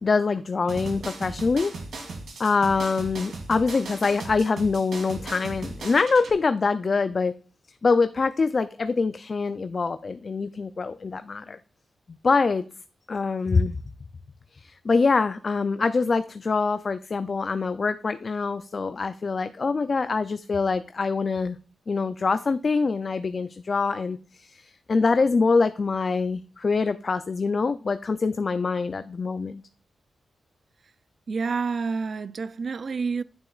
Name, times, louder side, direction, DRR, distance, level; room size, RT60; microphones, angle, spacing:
voice 1, 0.0-1.7 2.4-7.3 7.8-11.6 12.2-12.6 13.1-13.8 14.5-21.6 21.9-29.6, left 4 dB, 40° left, 0.3 m, -24 dB
sound 1, 0.7-6.3, right 3 dB, 70° right, 2.3 m, -37 dB
voice 2, 31.3-33.2, right 5 dB, 50° right, 0.3 m, -28 dB
9.0 x 6.8 x 2.3 m
wide cardioid pair, 110°, 0 cm